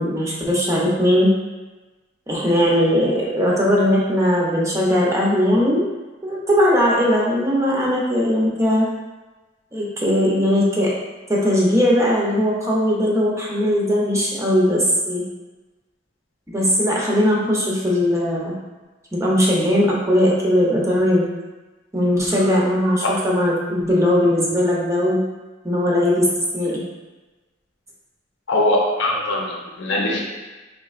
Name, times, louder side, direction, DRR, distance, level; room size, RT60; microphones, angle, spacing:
voice 1, 0.0-1.3 2.3-5.9 6.2-8.9 9.7-10.9 11.3-15.2 16.5-18.5 19.1-21.3 21.9-25.2 25.6-26.3 26.5-26.8, equal, 15° right, -4 dB, 0.6 m, -19 dB
voice 2, 28.5-30.2, left 1 dB, 70° left, -2 dB, 0.7 m, -21 dB
4.1 x 2.8 x 2.4 m, 1.2 s
head